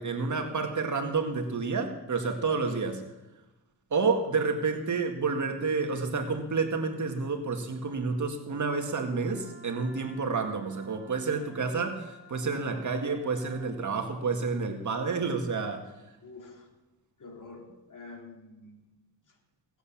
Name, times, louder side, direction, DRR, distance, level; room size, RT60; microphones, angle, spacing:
voice 1, 0.0-3.0 3.9-15.8, right 4 dB, 45° right, 5 dB, 2.0 m, -29 dB
Wind instrument woodwind instrument, 9.2-13.8, right 2 dB, 10° right, 6.1 m, -54 dB
voice 2, 16.2-16.7 17.2-18.8 19.3-19.4, left 3 dB, 50° left, 2 dB, 3.2 m, -47 dB
18.0 x 8.1 x 7.3 m, 1.0 s
cardioid pair, 85°, 40 cm